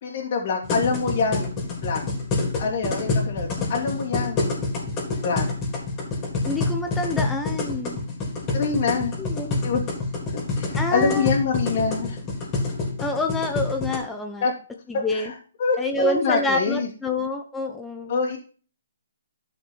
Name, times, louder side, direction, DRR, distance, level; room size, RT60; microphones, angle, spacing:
voice 1, 0.0-1.5 1.8-2.0 2.6-4.5 5.2-5.5 8.5-9.1 9.6-9.8 10.5-12.2 14.4-14.5 14.9-16.9 18.1-18.4, left 5 dB, 45° left, -4 dB, 2.8 m, -25 dB
sound 1, 0.6-14.0, left 3 dB, 20° left, 4.0 m, -27 dB
voice 2, 6.4-8.0 9.2-9.6 10.8-11.3 13.0-14.4 14.9-15.3 15.8-18.2, left 2 dB, 5° left, 4 dB, 1.0 m, -27 dB
12.0 x 6.0 x 4.5 m, 0.38 s
hypercardioid pair, 150°, 0 cm